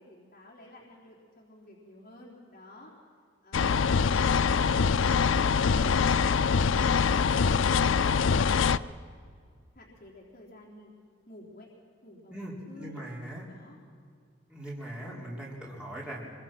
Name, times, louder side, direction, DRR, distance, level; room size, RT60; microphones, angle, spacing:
voice 1, 0.0-2.9 3.4-3.8 4.0-4.5 5.0-7.7 8.1-8.7 9.7-10.9 11.3-11.7 12.0-13.0 13.5-13.8 15.1-15.3, left 1 dB, 45° left, -4 dB, 3.8 m, -52 dB
sound 1, 3.5-8.8, left 5 dB, 75° left, 0.5 m, -24 dB
voice 2, 12.3-13.4 14.5-16.3, right 1 dB, 5° right, -5 dB, 4.2 m, -40 dB
25.0 x 24.0 x 6.0 m, 2.1 s
head